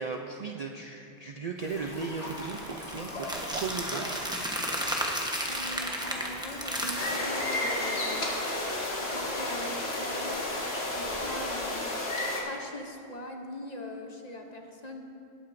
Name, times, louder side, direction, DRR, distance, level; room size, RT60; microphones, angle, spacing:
voice 1, 0.0-4.1, right 4 dB, 50° right, 2 dB, 0.5 m, -36 dB
Stream, 1.6-11.4, left 1 dB, 90° left, 3.1 m, -42 dB
sound 1, 2.2-7.2, equal, 5° right, 0.9 m, -33 dB
voice 2, 5.5-8.2 9.0-10.4 10.9-11.9 12.4-15.0, left 1 dB, 40° left, 3 dB, 0.9 m, -41 dB
sound 2, 7.0-12.4, left 2 dB, 65° left, 1.7 m, -32 dB
19.0 x 8.7 x 2.6 m, 2.6 s
omnidirectional pair, 1.2 m